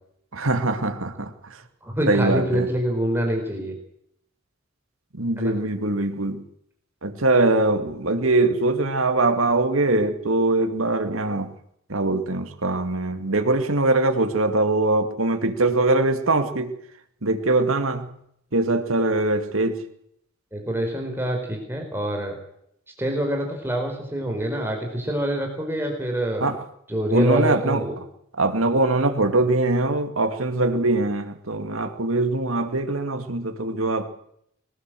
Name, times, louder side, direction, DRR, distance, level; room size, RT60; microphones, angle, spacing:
voice 1, 0.3-1.6 2.1-2.7 5.1-6.4 7.0-11.5 11.9-16.7 17.2-18.1 18.5-19.8 26.4-26.6 27.1-27.8 28.4-34.1, right 2 dB, 75° right, 7 dB, 2.4 m, -22 dB
voice 2, 1.8-3.7 5.4-5.5 20.5-22.3 23.0-26.5 26.9-28.0, right 1 dB, 10° right, 1 dB, 4.6 m, -26 dB
22.0 x 19.0 x 7.8 m, 0.73 s
head